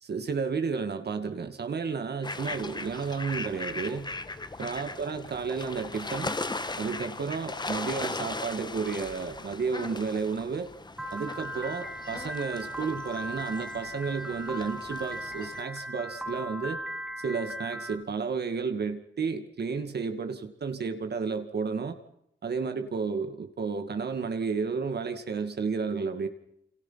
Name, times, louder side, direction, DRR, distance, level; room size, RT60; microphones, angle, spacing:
voice 1, 0.0-4.1 4.6-6.4 6.8-10.7 11.1-16.8 17.2-22.0 22.4-26.3, right 5 dB, 60° right, 7 dB, 2.3 m, -32 dB
sound 1, 2.2-15.6, left 3 dB, 20° left, 1.6 m, -38 dB
Piano, 11.0-17.9, equal, ahead, 4.3 m, -38 dB
29.0 x 27.5 x 5.9 m, 0.77 s
wide cardioid pair, 115°, 19 cm